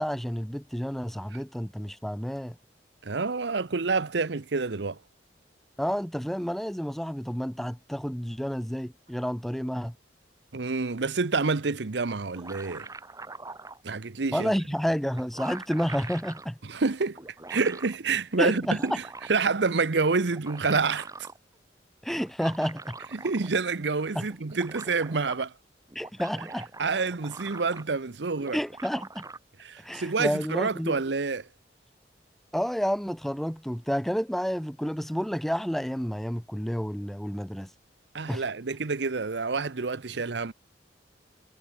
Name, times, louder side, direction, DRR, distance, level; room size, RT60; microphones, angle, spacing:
voice 1, 0.0-2.5 5.8-9.9 14.3-16.6 18.4-19.0 22.0-22.9 24.2-24.3 25.9-26.7 28.5-29.2 29.8-31.0 32.5-37.7 38.3-38.4, equal, ahead, 0.6 m, -30 dB
voice 2, 3.0-5.0 10.5-12.9 13.8-14.5 16.6-17.2 17.5-19.0 19.3-21.1 23.1-25.5 26.8-28.6 29.6-31.5 38.1-40.5, right 4 dB, 75° right, 0.8 m, -28 dB
sound 1, 12.1-13.8 14.8-14.9 15.1-16.5 17.2-18.0 18.5-19.5 20.2-21.4 22.3-23.7 24.0-24.1 24.3-25.5 25.9-28.1 28.4-29.4, right 3 dB, 20° right, 2.0 m, -43 dB
head